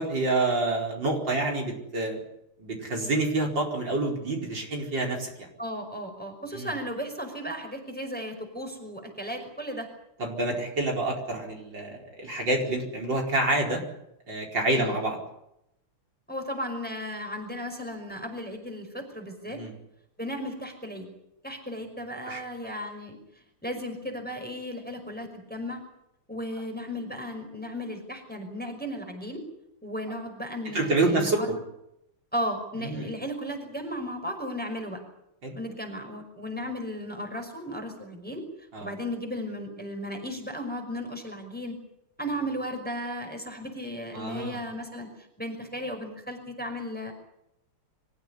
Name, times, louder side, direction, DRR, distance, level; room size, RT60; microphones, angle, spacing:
voice 1, 0.0-2.2 2.6-5.3 6.5-6.7 10.2-13.8 14.3-15.2 19.5-19.7 22.3-22.4 30.7-31.4 32.8-33.1 35.4-35.6 38.7-38.9 44.1-44.6, right 2 dB, 55° right, 0 dB, 5.3 m, -27 dB
voice 2, 5.6-9.9 14.7-15.0 16.3-19.6 20.2-21.1 21.4-23.2 23.6-25.8 26.3-29.4 29.8-31.5 32.3-35.0 35.5-38.4 38.8-41.8 42.2-45.1 45.4-47.1, equal, 5° left, 3 dB, 5.4 m, -35 dB
26.0 x 15.5 x 10.0 m, 0.81 s
omnidirectional pair, 2.4 m